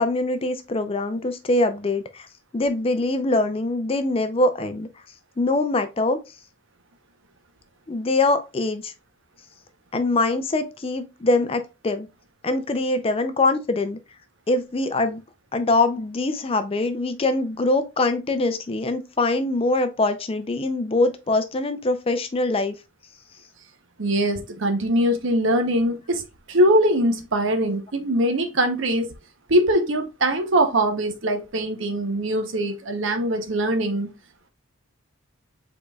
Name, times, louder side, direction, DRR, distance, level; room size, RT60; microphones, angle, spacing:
voice 1, 0.0-2.3 2.5-4.9 5.4-6.2 7.9-8.9 9.9-12.1 12.4-14.0 14.5-15.2 15.5-22.7, left 2 dB, 25° left, 0.4 m, -23 dB
voice 2, 24.0-29.1 29.5-34.1, right 1 dB, 65° right, 0.8 m, -22 dB
5.0 x 3.9 x 2.2 m
head